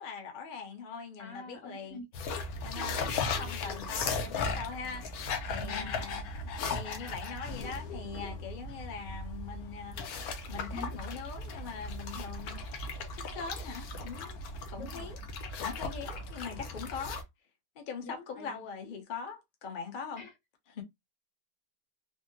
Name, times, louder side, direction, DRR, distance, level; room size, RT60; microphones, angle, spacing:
voice 1, 0.0-2.0 2.6-10.1 10.5-12.6 13.1-15.2 15.6-17.2 17.8-20.2 20.7-20.8, left 6 dB, 45° left, 0.7 m, -42 dB
voice 2, 1.2-2.0 2.7-3.2 5.6-6.0 9.9-10.1 10.7-11.0 14.7-15.1 16.0-16.2 18.0-19.0 20.2-20.3, left 3 dB, 85° left, 1.6 m, -46 dB
sound 1, 2.1-17.2, left 3 dB, 65° left, 1.1 m, -37 dB
3.6 x 2.1 x 2.6 m
omnidirectional pair, 1.8 m